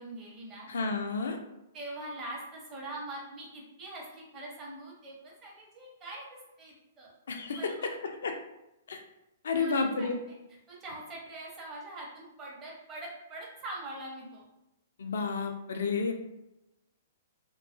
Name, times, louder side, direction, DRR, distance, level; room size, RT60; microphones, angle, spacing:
voice 1, 0.0-0.7 1.7-7.1 7.5-7.9 9.5-10.4 10.7-14.4, right 2 dB, 25° right, -4 dB, 0.8 m, -43 dB
voice 2, 0.7-1.4 7.3-7.7 8.2-8.4 8.9-9.0 9.4-10.2 15.0-16.1, left 4 dB, 65° left, 5 dB, 0.4 m, -30 dB
2.3 x 2.3 x 2.4 m, 0.90 s
figure-of-eight pair, 115°, 0 cm